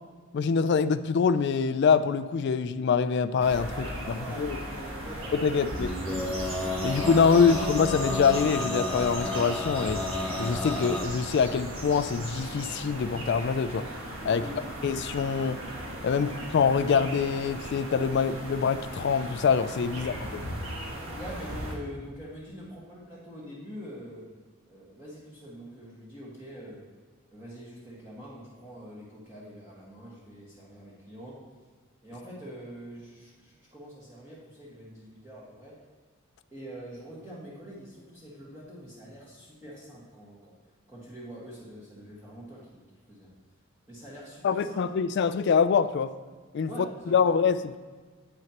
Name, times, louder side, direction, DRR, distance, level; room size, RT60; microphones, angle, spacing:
voice 1, 0.3-4.6 5.3-5.9 6.8-10.0 10.4-13.9 14.2-14.4 14.8-15.6 16.0-20.4 44.4-46.1 46.5-46.7 47.1-47.8, left 6 dB, 55° left, 12 dB, 0.3 m, -25 dB
sound 1, 3.4-21.7, right 1 dB, 65° right, 1.8 m, -37 dB
voice 2, 3.7-6.5 7.3-7.6 14.3-14.7 19.9-20.1 21.1-24.3 24.7-26.8 27.3-31.4 32.0-35.7 36.5-40.5 40.9-42.8 43.1-43.3 43.9-44.9 46.7-47.3, equal, 15° right, -7 dB, 1.6 m, -44 dB
Male singing, 5.7-11.1, left 1 dB, 5° left, 0.7 m, -32 dB
9.4 x 8.7 x 2.9 m, 1.5 s
head